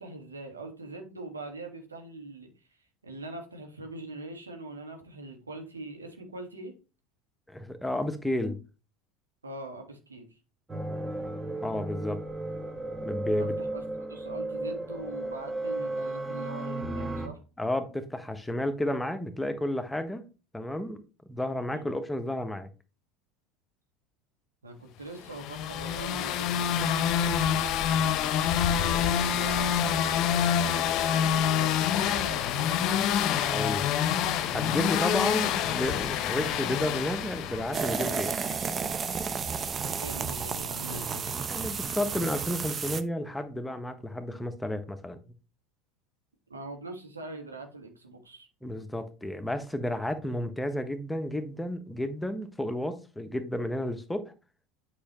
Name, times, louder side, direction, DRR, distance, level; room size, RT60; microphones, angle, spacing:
voice 1, 0.0-2.5 3.0-6.7 9.4-10.4 13.3-17.4 21.7-21.9 24.6-27.3 28.7-33.2 39.8-41.3 46.5-48.5, right 2 dB, 90° right, 1.6 m, -42 dB
voice 2, 7.5-8.6 11.6-12.2 13.0-13.6 17.6-20.3 20.5-21.0 21.3-22.7 33.5-33.9 34.5-38.3 41.5-45.2 48.6-54.2, left 1 dB, 5° left, 1.0 m, -32 dB
sound 1, 10.7-17.3, right 2 dB, 10° right, 1.5 m, -34 dB
sound 2, 25.3-38.3, left 9 dB, 50° left, 0.8 m, -27 dB
sound 3, 37.7-43.0, right 6 dB, 30° right, 0.7 m, -32 dB
8.5 x 5.3 x 3.0 m
figure-of-eight pair, 75°, 0 cm